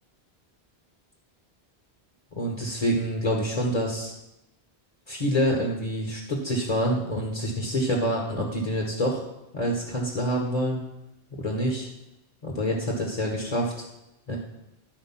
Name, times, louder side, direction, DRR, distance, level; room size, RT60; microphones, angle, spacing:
voice 1, 2.3-4.1 5.1-9.2 9.5-10.8 11.4-11.9 12.4-13.7 14.3-14.4, equal, 35° left, -1 dB, 1.5 m, -26 dB
11.0 x 4.6 x 6.0 m, 0.89 s
omnidirectional pair, 1.1 m